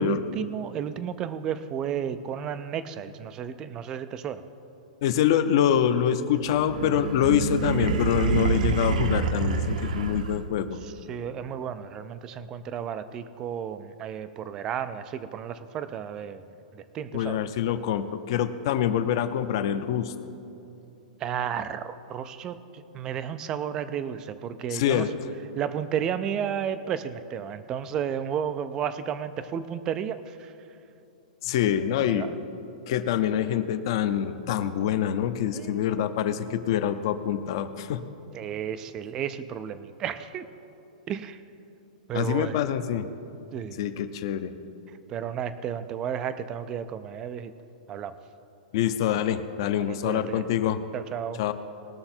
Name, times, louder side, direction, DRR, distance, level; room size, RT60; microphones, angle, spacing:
voice 1, 0.0-4.4 10.8-16.4 16.7-17.4 21.2-25.1 25.6-30.5 32.1-32.4 35.5-36.1 38.3-40.5 41.1-41.4 42.1-42.6 43.5-43.9 45.1-47.5 47.9-48.1 49.8-50.5 50.9-51.4, right 8 dB, 15° right, 13 dB, 0.3 m, -33 dB
voice 2, 5.0-10.8 17.1-20.1 24.7-25.1 31.4-32.3 32.9-38.0 42.1-43.1 43.8-44.5 48.7-50.8 51.4-51.5, left 10 dB, 35° left, 10 dB, 0.6 m, -25 dB
sound 1, 6.4-10.7, right 4 dB, 65° right, 0.8 m, -27 dB
20.0 x 6.8 x 4.4 m, 2.8 s
hypercardioid pair, 180°, 4 cm